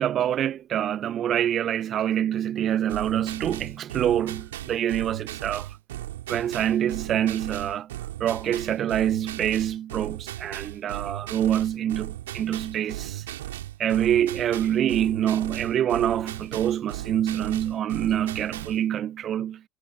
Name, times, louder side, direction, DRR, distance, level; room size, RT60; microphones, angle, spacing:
voice 1, 0.0-5.7 6.3-7.9 8.2-13.2 13.8-19.6, right 10 dB, 45° right, 0.6 m, -26 dB
sound 1, 2.9-18.8, right 14 dB, 75° right, 3.1 m, -37 dB
figure-of-eight pair, 65°, 0 cm